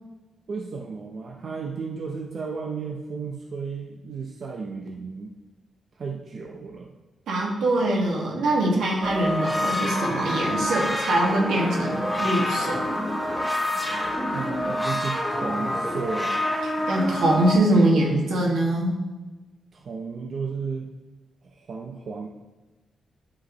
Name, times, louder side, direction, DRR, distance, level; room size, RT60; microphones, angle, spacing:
voice 1, 0.5-5.4 6.0-6.9 13.7-16.5 19.7-20.9 21.4-22.3, right 5 dB, 55° right, 0 dB, 0.7 m, -34 dB
voice 2, 7.3-12.8 16.6-19.0, right 1 dB, 85° right, -2 dB, 1.9 m, -23 dB
sound 1, 9.0-17.6, left 1 dB, ahead, 1.1 m, -27 dB
11.5 x 4.9 x 3.1 m, 1.2 s
cardioid pair, 100°, 0 cm